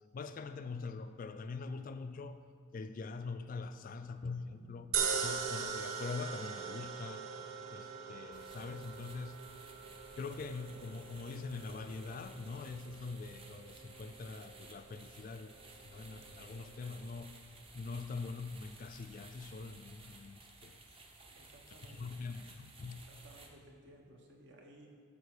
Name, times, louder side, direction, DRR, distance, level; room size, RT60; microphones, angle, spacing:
voice 1, 0.0-2.4 2.7-4.9 5.2-7.3 7.7-9.4 10.2-15.5 15.8-17.3 17.7-20.8 21.9-23.0, left 4 dB, 40° left, 10 dB, 0.3 m, -43 dB
voice 2, 4.5-5.1 21.3-22.2 22.9-24.9, right 1 dB, 55° right, 1 dB, 1.3 m, -59 dB
sound 1, 4.9-17.3, right 6 dB, 75° right, 0.8 m, -42 dB
sound 2, 8.3-23.5, right 3 dB, 25° right, 0.8 m, -56 dB
13.0 x 5.2 x 4.9 m, 2.1 s
head